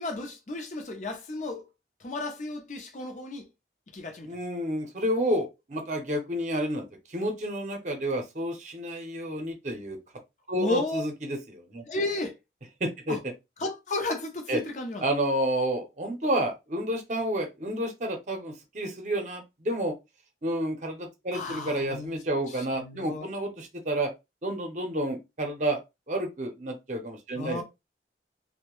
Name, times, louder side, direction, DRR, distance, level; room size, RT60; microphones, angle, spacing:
voice 1, 0.0-1.6 2.0-3.5 3.9-4.4 10.5-11.0 11.9-12.4 13.1-13.2 13.6-15.0 21.3-22.2 22.5-23.3 27.3-27.6, left 2 dB, 45° left, 0.6 m, -33 dB
voice 2, 4.2-6.9 7.1-10.0 10.5-11.8 12.8-13.2 14.5-14.6 15.0-20.0 20.4-24.1 24.4-25.8 26.1-27.6, right 1 dB, 40° right, 0.7 m, -30 dB
2.7 x 2.1 x 3.0 m
head